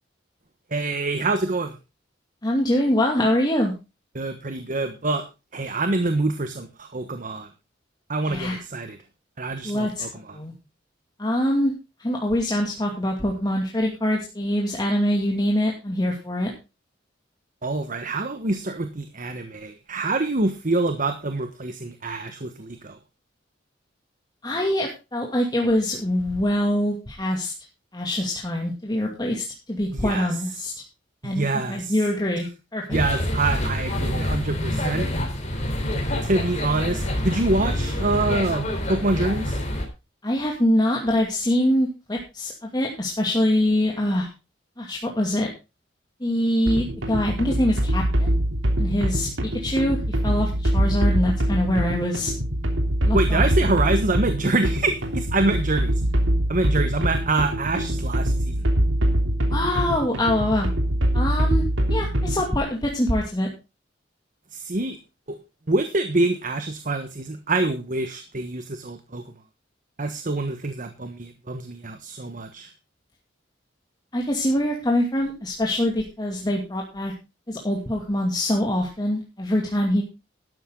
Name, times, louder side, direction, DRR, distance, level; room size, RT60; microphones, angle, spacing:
voice 1, 0.7-1.8 4.1-5.2 5.5-7.5 8.1-9.0 9.4-10.4 17.6-23.0 29.9-30.3 31.2-32.0 32.9-35.1 36.2-39.6 53.1-55.9 56.5-58.7 64.5-65.0 65.7-69.2 70.0-72.7, right 2 dB, 45° right, 8 dB, 1.2 m, -26 dB
voice 2, 2.4-3.7 8.3-8.6 9.6-10.0 10.3-10.5 11.2-11.7 12.0-16.5 24.4-27.5 27.9-30.7 31.2-32.5 32.7-33.0 40.2-44.3 44.8-45.5 46.2-48.3 48.8-52.3 53.0-53.7 59.5-60.7 61.1-63.5 74.1-77.1 77.5-80.0, left 1 dB, 20° left, -1 dB, 2.5 m, -24 dB
sound 1, 32.9-39.9, left 1 dB, 40° left, 4.0 m, -27 dB
sound 2, 46.7-62.6, right 1 dB, 85° right, 3.1 m, -23 dB
12.5 x 11.5 x 3.8 m, 0.29 s
head